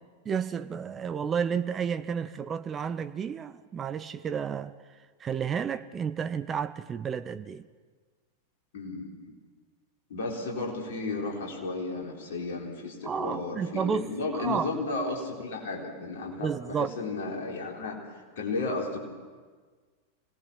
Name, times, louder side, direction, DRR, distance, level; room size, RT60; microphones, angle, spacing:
voice 1, 0.3-4.7 5.2-7.6 13.0-14.1 14.4-14.7 16.4-16.9, right 7 dB, 25° right, 0.6 m, -31 dB
voice 2, 8.7-9.4 10.1-18.0 18.4-19.0, left 3 dB, 55° left, 4.3 m, -33 dB
26.5 x 19.5 x 6.0 m
figure-of-eight pair, 90°, 0 cm